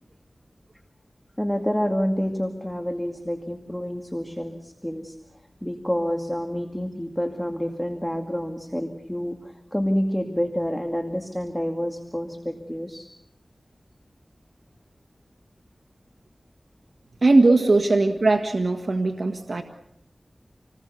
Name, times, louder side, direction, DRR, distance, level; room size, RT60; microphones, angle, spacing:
voice 1, 1.4-5.1 5.6-13.1, equal, 10° left, 4 dB, 2.2 m, -28 dB
voice 2, 17.2-19.6, right 2 dB, 65° right, 5 dB, 1.6 m, -19 dB
28.0 x 19.5 x 7.0 m, 0.82 s
wide cardioid pair, 65°, 0 cm